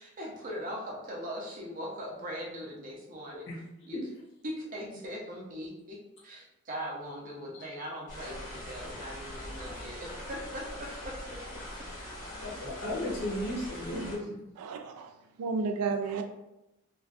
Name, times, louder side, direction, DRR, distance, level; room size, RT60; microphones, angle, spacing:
voice 1, 0.0-3.5 3.9-4.0 4.4-6.0 6.2-11.2, equal, 35° right, -2 dB, 0.5 m, -40 dB
sound 1, 8.1-14.2, left 1 dB, 90° left, 1.2 m, -42 dB
voice 2, 12.4-14.4, left 1 dB, 55° left, -3 dB, 0.7 m, -35 dB
voice 3, 14.6-15.1 15.4-16.2, right 4 dB, 90° right, 9 dB, 0.3 m, -32 dB
2.5 x 2.2 x 2.4 m, 0.91 s
head